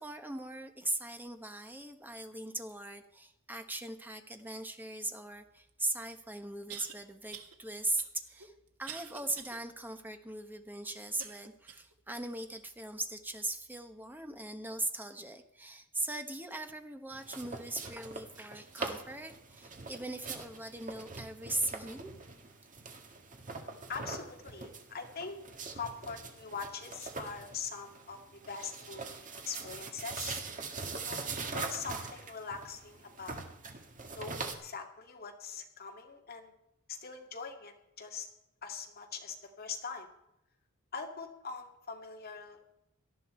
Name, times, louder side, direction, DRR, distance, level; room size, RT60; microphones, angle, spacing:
voice 1, 0.0-8.5 8.8-22.1, right 2 dB, 10° right, 6 dB, 1.2 m, -39 dB
sound 1, 5.7-5.8 6.7-7.0 7.3-7.6 8.0-9.6 10.0-10.1 11.2-11.9 12.5-12.6 13.4-13.5, right 8 dB, 85° right, 1.6 m, -47 dB
sound 2, 17.1-34.6, right 4 dB, 35° right, 1.7 m, -43 dB
voice 2, 23.9-25.4 25.7-30.4 31.1-33.5 34.1-36.5 36.9-38.3 38.6-40.1 40.9-42.6, left 5 dB, 45° left, 2 dB, 2.2 m, -42 dB
18.0 x 13.0 x 4.4 m, 0.83 s
head